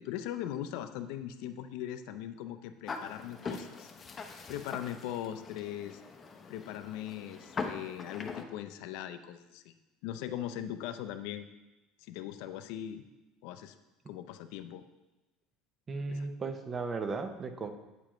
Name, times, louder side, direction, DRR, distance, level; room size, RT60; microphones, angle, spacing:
voice 1, 0.0-3.9 4.5-6.0 6.5-9.7 10.0-11.5 12.0-13.0 13.4-13.7 14.1-14.8 16.1-16.3, left 11 dB, 75° left, 10 dB, 0.5 m, -40 dB
sound 1, 2.9-8.4, left 4 dB, 25° left, 0.7 m, -42 dB
voice 2, 15.9-17.7, right 4 dB, 25° right, 7 dB, 0.7 m, -35 dB
8.6 x 6.8 x 3.1 m, 1.0 s
cardioid pair, 140°, 0 cm